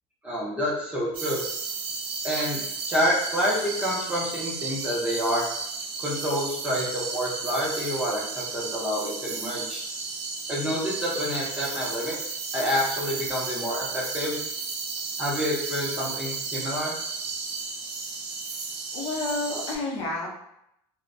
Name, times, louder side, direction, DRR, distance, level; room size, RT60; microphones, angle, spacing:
voice 1, 0.2-1.4 2.2-2.6 2.9-5.5 6.0-8.2 8.5-9.8 10.5-14.4 15.2-16.9, equal, 10° right, -5 dB, 0.5 m, -28 dB
sound 1, 1.1-19.8, right 4 dB, 60° right, 0.5 m, -33 dB
voice 2, 18.9-20.3, left 2 dB, 50° left, -2 dB, 0.6 m, -30 dB
2.4 x 2.0 x 2.5 m, 0.78 s
cardioid pair, 160°, 12 cm